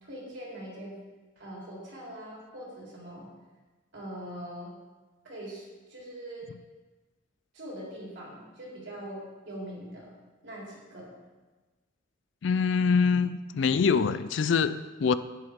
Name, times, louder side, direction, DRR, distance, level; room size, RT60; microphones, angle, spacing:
voice 1, 0.0-1.0 1.4-3.3 3.9-4.7 5.2-6.5 7.5-10.1 10.4-11.1, right 1 dB, 60° right, 3.5 m, -42 dB
voice 2, 12.4-15.2, left 5 dB, 60° left, 0.4 m, -24 dB
9.8 x 9.4 x 3.6 m
head